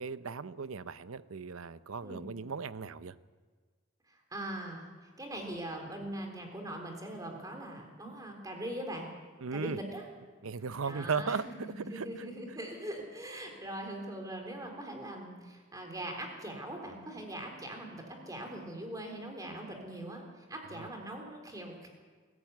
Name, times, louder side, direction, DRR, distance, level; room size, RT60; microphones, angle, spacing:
voice 1, 0.0-3.1 9.4-9.8 10.4-12.3 20.7-20.9, right 5 dB, 90° right, 0.7 m, -37 dB
voice 2, 4.3-4.9 5.2-9.1 9.5-10.0 10.8-11.4 11.7-21.9, right 1 dB, 15° right, 3.6 m, -41 dB
21.5 x 14.0 x 9.3 m
head